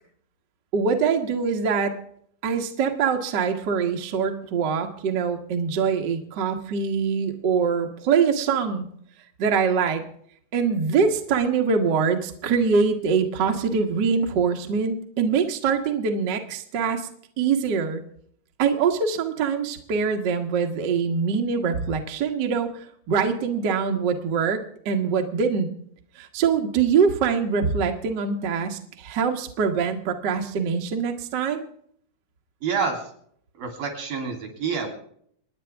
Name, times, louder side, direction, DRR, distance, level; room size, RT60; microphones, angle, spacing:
voice 1, 0.7-2.0 2.4-8.9 9.4-10.0 10.5-17.0 17.4-18.0 18.6-22.7 23.1-25.7 26.2-31.6, right 6 dB, 50° right, 4 dB, 1.4 m, -23 dB
voice 2, 32.6-33.1 33.6-34.9, right 5 dB, 85° right, 3 dB, 4.8 m, -27 dB
28.0 x 9.8 x 3.5 m, 0.64 s
omnidirectional pair, 3.9 m